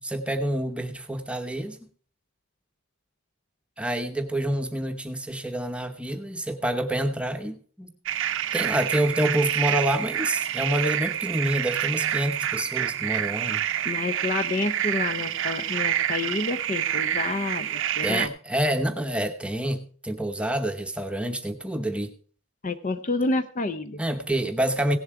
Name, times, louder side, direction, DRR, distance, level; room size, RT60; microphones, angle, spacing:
voice 1, 0.0-1.8 3.8-7.9 8.5-13.6 18.0-22.1 24.0-25.0, right 1 dB, 5° right, 6 dB, 0.9 m, -27 dB
sound 1, 8.1-18.3, right 11 dB, 55° right, 0.6 m, -28 dB
voice 2, 13.8-18.3 22.6-24.0, left 3 dB, 35° left, 10 dB, 0.6 m, -29 dB
17.0 x 7.2 x 4.7 m, 0.42 s
head